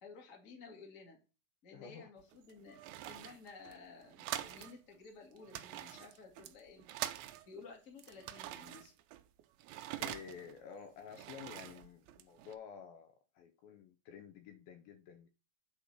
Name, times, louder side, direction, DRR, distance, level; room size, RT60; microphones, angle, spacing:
voice 1, 0.0-1.2 1.6-6.8 7.5-8.9, left 4 dB, 25° left, 1.8 m, -54 dB
voice 2, 1.7-2.1 10.0-15.3, left 7 dB, 80° left, 2.3 m, -51 dB
sound 1, 2.2-4.8 5.0-5.1 5.4-7.7 8.0-10.6 11.0-12.5, right 13 dB, 80° right, 2.3 m, -45 dB
8.2 x 4.2 x 5.7 m
omnidirectional pair, 4.7 m